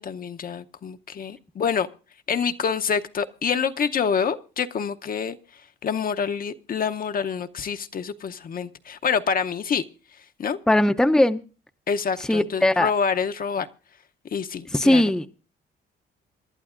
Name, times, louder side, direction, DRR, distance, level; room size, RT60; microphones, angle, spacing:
voice 1, 0.0-1.9 2.3-5.4 5.8-9.8 10.4-10.6 11.9-13.7 14.3-15.0, left 6 dB, 45° left, 0.7 m, -26 dB
voice 2, 10.7-11.4 12.2-12.9 14.7-15.3, left 1 dB, 5° left, 0.6 m, -19 dB
27.5 x 11.0 x 2.5 m
cardioid pair, 90°, 20 cm